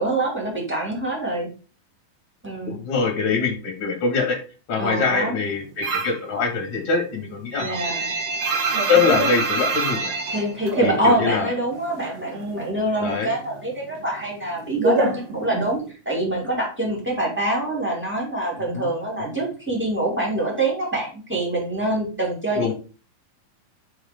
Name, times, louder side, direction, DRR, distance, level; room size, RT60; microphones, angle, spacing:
voice 1, 0.0-1.5 2.4-2.8 4.8-5.4 7.6-8.1 9.1-9.2 10.3-22.7, right 1 dB, 5° right, -2 dB, 2.5 m, -25 dB
voice 2, 2.7-4.4 4.7-8.2 8.9-10.1 10.8-11.5 13.0-13.3 18.7-18.9 22.6-22.7, left 5 dB, 45° left, 3 dB, 2.4 m, -23 dB
sound 1, 5.8-6.3 6.6-11.5 11.7-12.8 13.1-15.9, right 3 dB, 65° right, 2.2 m, -25 dB
5.8 x 4.8 x 5.3 m, 0.36 s
omnidirectional pair, 3.7 m